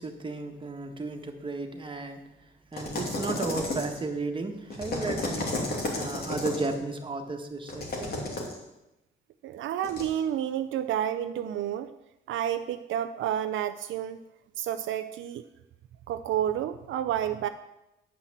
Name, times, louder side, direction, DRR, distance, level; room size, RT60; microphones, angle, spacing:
voice 1, 0.0-2.2 2.7-5.7 5.9-8.1, right 3 dB, 25° right, 4 dB, 1.5 m, -34 dB
sound 1, 2.7-4.1 4.7-6.7 7.7-8.6 9.8-10.1, left 2 dB, 50° left, 2.7 m, -32 dB
voice 2, 9.4-11.9 12.3-14.2 14.6-15.4 16.1-17.5, right 10 dB, 75° right, 9 dB, 0.5 m, -30 dB
9.4 x 5.9 x 7.3 m, 0.93 s
cardioid pair, 90°, 20 cm